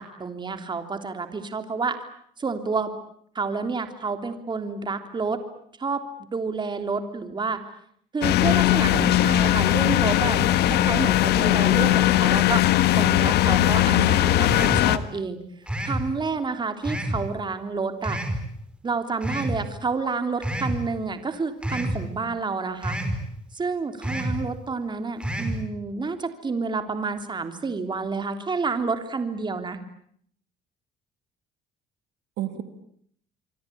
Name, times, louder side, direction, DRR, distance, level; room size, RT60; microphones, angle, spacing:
voice 1, 0.0-2.0 2.4-2.9 3.3-5.4 5.8-6.0 6.3-7.6 8.1-12.6 13.0-15.4 15.8-18.2 18.8-23.0 23.5-29.8, right 4 dB, 25° right, 8 dB, 3.3 m, -29 dB
sound 1, 8.2-15.0, left 14 dB, 75° left, 1.6 m, -19 dB
voice 2, 13.6-14.5 32.4-32.6, right 9 dB, 80° right, 10 dB, 3.0 m, -32 dB
sound 2, 14.5-14.9 15.7-16.1 16.8-17.2 18.0-18.4 19.2-19.6 20.4-20.8 21.6-22.0 22.8-23.2 24.0-24.4 25.2-25.6, equal, 5° right, 5.4 m, -28 dB
27.0 x 24.0 x 8.6 m, 0.63 s
cardioid pair, 110°, 17 cm